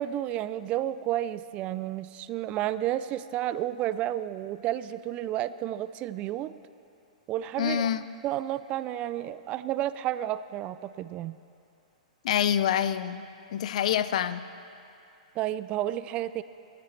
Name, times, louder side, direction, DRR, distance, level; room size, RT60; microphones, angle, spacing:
voice 1, 0.0-6.5 7.3-7.9 8.2-11.4 15.4-16.4, right 13 dB, 30° right, 15 dB, 0.4 m, -31 dB
voice 2, 7.6-8.0 12.2-13.3 13.5-14.4, left 9 dB, 65° left, 13 dB, 0.5 m, -26 dB
20.5 x 14.0 x 3.3 m, 2.6 s
hypercardioid pair, 130°, 4 cm